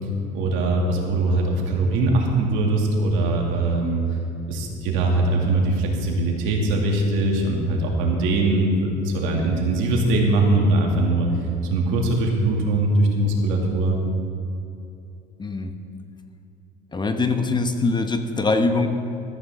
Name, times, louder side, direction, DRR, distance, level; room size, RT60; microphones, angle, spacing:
voice 1, 0.3-4.0 4.5-11.3 11.7-14.0, right 2 dB, 75° right, 0 dB, 2.5 m, -21 dB
voice 2, 15.4-15.8 16.9-18.9, left 3 dB, 20° left, 7 dB, 1.0 m, -22 dB
14.0 x 13.5 x 3.7 m, 2.7 s
supercardioid pair, 90°, 20 cm